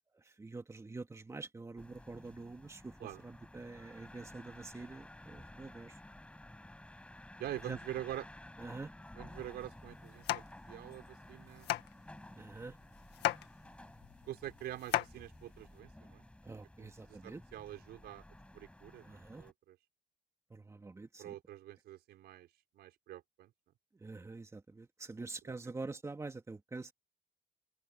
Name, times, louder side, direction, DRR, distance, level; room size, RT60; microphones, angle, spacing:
voice 1, 0.1-6.0 7.7-7.8 8.6-8.9 12.4-12.8 16.4-17.4 19.0-19.4 20.5-21.4 23.9-26.9, right 3 dB, 15° right, 2.4 m, -46 dB
sound 1, 1.8-19.5, left 1 dB, 5° left, 7.9 m, -54 dB
voice 2, 7.4-8.3 9.2-11.8 14.3-16.2 16.8-18.2 18.5-19.8 21.2-22.5 22.7-23.5 25.5-25.6, right 13 dB, 70° right, 5.2 m, -46 dB
sound 2, 9.3-15.8, left 15 dB, 80° left, 1.8 m, -39 dB
cardioid pair, 110°, 17 cm